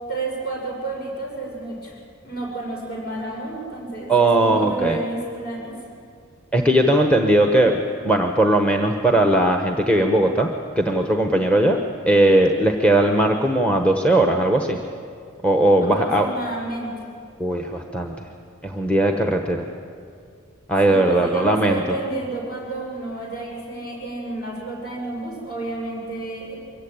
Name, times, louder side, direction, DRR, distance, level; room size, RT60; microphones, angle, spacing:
voice 1, 0.1-1.9 2.2-5.7 15.8-16.9 20.9-26.5, right 3 dB, 50° left, -2 dB, 6.6 m, -30 dB
voice 2, 4.1-5.0 6.5-7.8 8.0-10.5 10.8-11.8 12.1-14.8 15.4-16.3 17.4-18.1 18.6-19.6 20.7-21.8, right 1 dB, 5° left, 3 dB, 0.9 m, -18 dB
23.5 x 15.0 x 8.8 m, 2.3 s
head